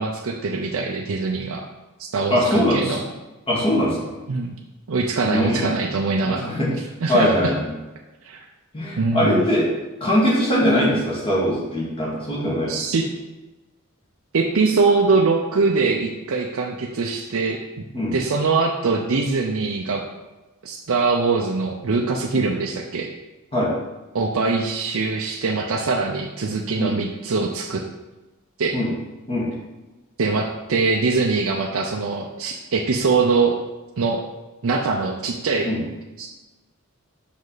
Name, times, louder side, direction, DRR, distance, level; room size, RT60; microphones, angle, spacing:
voice 1, 0.0-1.6 2.0-3.0 4.3-4.6 4.9-7.5 8.2-8.4 9.0-9.4 12.7-13.1 14.3-17.6 18.1-20.0 20.6-23.1 24.1-27.8 28.6-28.7 30.2-33.5 34.0-34.2 34.6-35.7 36.2-36.3, right 4 dB, 65° right, 0 dB, 0.6 m, -22 dB
voice 2, 2.3-3.0 3.5-4.0 5.2-5.7 6.2-6.7 7.1-7.7 8.7-9.7 10.0-12.7 17.9-18.1 22.3-22.4 23.5-23.7 26.8-26.9 28.7-28.9 29.3-29.5 35.6-35.8, equal, 25° left, -5 dB, 2.0 m, -21 dB
6.1 x 5.2 x 4.0 m, 1.1 s
head